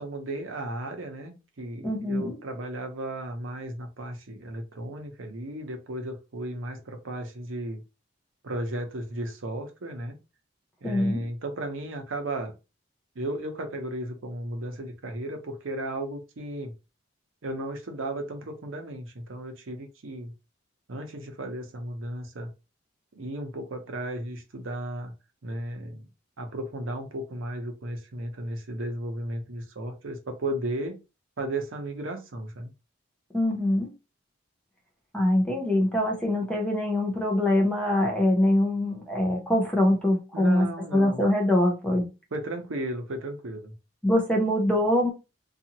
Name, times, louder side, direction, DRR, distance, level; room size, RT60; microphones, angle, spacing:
voice 1, 0.0-7.8 8.4-10.2 10.8-12.5 13.1-16.7 17.4-20.3 20.9-22.5 23.1-25.1 25.4-26.1 26.4-31.0 31.4-32.7 40.3-41.3 42.3-43.7, right 1 dB, 85° right, 4 dB, 0.7 m, -35 dB
voice 2, 1.8-2.4 10.8-11.2 33.3-33.9 35.1-40.7 40.9-42.1 44.0-45.1, left 1 dB, 5° left, 0 dB, 0.6 m, -23 dB
2.7 x 2.4 x 2.8 m, 0.28 s
head